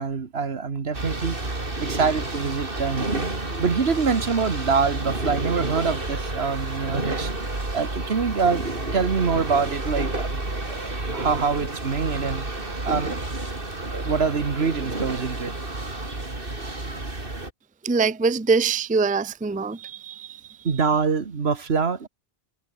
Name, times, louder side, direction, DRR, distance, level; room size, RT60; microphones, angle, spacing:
voice 1, 0.0-1.5 1.8-7.5 7.7-13.2 13.5-13.6 13.9-15.5 20.6-22.1, right 5 dB, 80° right, 1.8 m, -25 dB
sound 1, 0.9-17.5, right 2 dB, 60° right, 4.0 m, -30 dB
voice 2, 17.8-20.4 20.7-20.9, right 4 dB, 10° right, 0.5 m, -24 dB
omnidirectional pair, 1.0 m